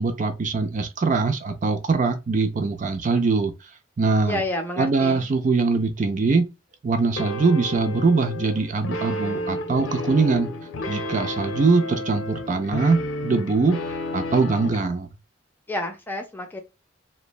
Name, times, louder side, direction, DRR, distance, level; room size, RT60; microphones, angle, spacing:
voice 1, 0.0-3.5 4.0-4.4 4.8-6.5 6.8-10.5 10.9-15.1, right 4 dB, 40° right, 0.4 m, -22 dB
voice 2, 4.3-5.3 15.7-16.6, left 1 dB, 10° left, 0.5 m, -29 dB
sound 1, 7.2-14.9, left 1 dB, 85° left, 0.6 m, -31 dB
3.0 x 2.2 x 2.3 m
head